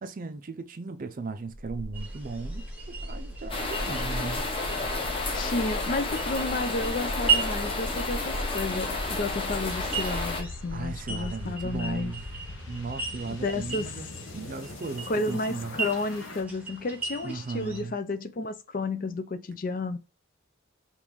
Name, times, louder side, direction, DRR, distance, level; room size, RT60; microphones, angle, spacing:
voice 1, 0.0-4.5 10.7-12.2 12.7-14.1 14.3-15.8 17.2-18.0, right 4 dB, 40° right, 0.4 m, -37 dB
sound 1, 1.5-16.4, equal, 70° left, 0.9 m, -38 dB
sound 2, 1.9-17.8, right 6 dB, 5° right, 0.9 m, -37 dB
sound 3, 3.5-10.4, left 3 dB, 25° left, 0.9 m, -32 dB
voice 2, 5.3-12.1 13.3-14.1 15.1-20.0, left 2 dB, 40° left, 0.4 m, -32 dB
5.3 x 2.5 x 3.0 m
head